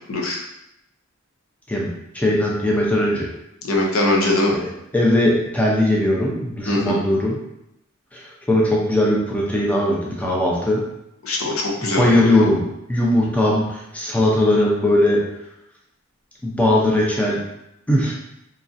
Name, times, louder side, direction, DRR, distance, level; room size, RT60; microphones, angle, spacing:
voice 1, 0.1-0.4 3.6-4.5 6.7-7.0 11.2-12.3, left 2 dB, 85° left, -1 dB, 0.6 m, -21 dB
voice 2, 2.1-3.3 4.5-4.7 4.9-7.4 8.1-10.8 11.8-12.6 12.9-15.2 16.4-17.4 17.9-18.1, left 1 dB, 5° left, -4 dB, 0.5 m, -19 dB
3.1 x 2.6 x 2.5 m, 0.84 s
head